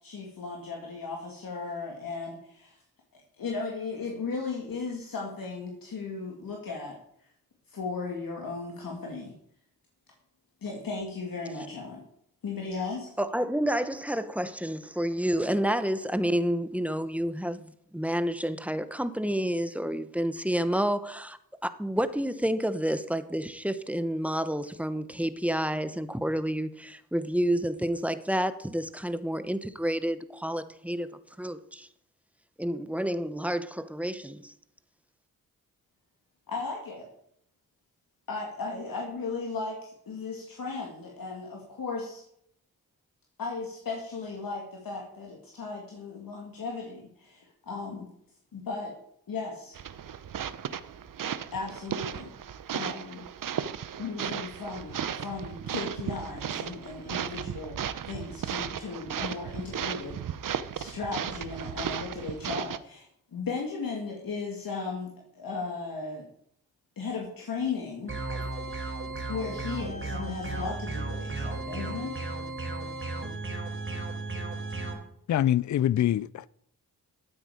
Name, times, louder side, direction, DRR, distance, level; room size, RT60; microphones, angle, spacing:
voice 1, 0.0-2.8 3.4-7.0 7.7-9.3 10.6-12.0 12.4-13.2 36.5-37.1 38.3-42.2 43.4-48.1 48.5-49.0 49.3-49.8 51.5-52.3 52.7-53.3 54.0-57.8 58.1-66.3 67.0-68.1 69.3-72.2, left 4 dB, 70° left, 2.4 m, -36 dB
voice 2, 13.2-31.1 31.4-31.9 32.6-34.5, equal, 5° right, 1.0 m, -29 dB
sound 1, 49.7-62.8, right 8 dB, 65° right, 0.8 m, -35 dB
sound 2, 68.1-74.9, right 2 dB, 35° right, 3.8 m, -34 dB
voice 3, 75.3-76.5, left 11 dB, 55° left, 0.5 m, -25 dB
12.5 x 8.9 x 4.9 m
cardioid pair, 55°, 35 cm